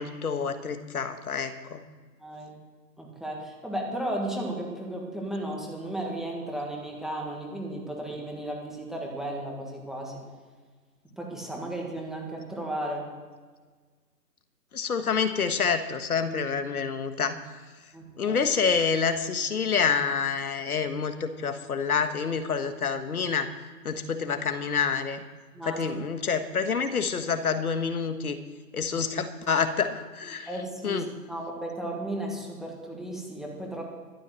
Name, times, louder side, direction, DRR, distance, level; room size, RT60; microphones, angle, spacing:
voice 1, 0.0-1.8 14.7-17.4 18.2-23.5 23.8-25.2 25.6-28.4 28.7-30.5 30.8-31.1, left 6 dB, 60° left, 8 dB, 1.6 m, -27 dB
voice 2, 2.2-2.5 3.0-10.2 11.2-13.1 17.9-18.4 25.5-25.8 30.5-33.8, right 1 dB, ahead, -2 dB, 1.5 m, -34 dB
13.5 x 10.5 x 7.6 m, 1.5 s
hypercardioid pair, 150°, 48 cm